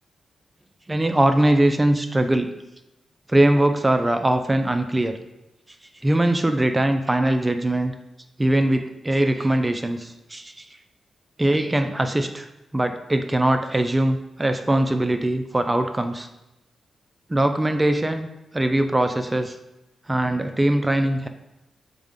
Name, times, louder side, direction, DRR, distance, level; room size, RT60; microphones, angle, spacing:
voice 1, 0.9-2.5 3.3-5.1 6.0-7.9 8.4-10.7 11.4-12.5 12.7-16.3 17.3-18.3 18.5-19.6 20.1-21.3, right 1 dB, 20° right, 7 dB, 0.3 m, -21 dB
4.9 x 2.1 x 3.5 m, 0.93 s
cardioid pair, 65°, 0 cm